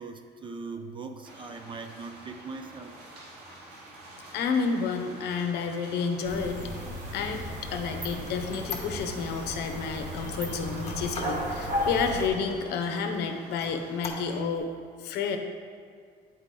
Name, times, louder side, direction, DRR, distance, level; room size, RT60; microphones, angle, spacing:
voice 1, 0.0-3.0, right 4 dB, 30° right, 6 dB, 0.5 m, -40 dB
sound 1, 1.2-14.4, right 1 dB, 75° right, 1.4 m, -49 dB
voice 2, 4.3-6.7 7.1-7.5 7.7-14.7 15.0-15.4, left 5 dB, 75° left, 6 dB, 0.7 m, -30 dB
night-cat-fight, 6.2-12.3, equal, 50° right, 1.3 m, -34 dB
Squeak, 6.5-9.5 9.9-11.5 12.0-12.1 12.5-13.2 13.5-14.6, left 5 dB, 35° left, 0.9 m, -41 dB
8.0 x 4.4 x 3.8 m, 2.1 s
cardioid pair, 110°, 17 cm